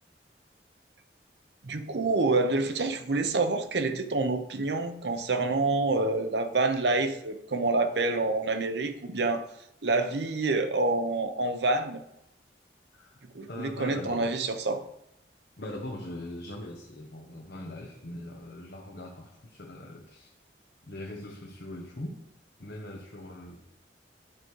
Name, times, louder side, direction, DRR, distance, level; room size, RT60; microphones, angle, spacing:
voice 1, 1.6-9.4 9.8-12.0 13.3-14.8, right 3 dB, 75° right, 7 dB, 0.8 m, -27 dB
voice 2, 13.5-14.3 15.6-20.3 20.9-22.2 22.6-23.6, left 1 dB, 65° left, 0 dB, 1.0 m, -41 dB
8.9 x 4.9 x 4.6 m, 0.82 s
head